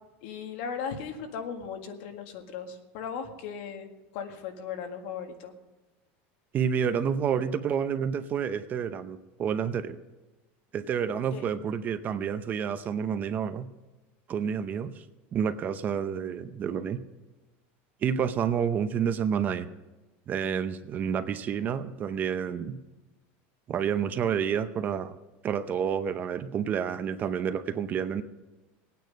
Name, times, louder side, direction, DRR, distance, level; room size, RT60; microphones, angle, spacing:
voice 1, 0.2-3.9 4.1-5.5 11.1-11.4, left 6 dB, 65° left, 5 dB, 1.8 m, -37 dB
voice 2, 6.5-10.0 10.7-13.7 14.3-15.0 15.3-17.0 18.0-19.7 20.3-22.8 23.7-25.2 25.4-28.2, right 7 dB, 30° right, 11 dB, 0.7 m, -29 dB
19.5 x 9.3 x 5.2 m, 1.1 s
supercardioid pair, 155°, 6 cm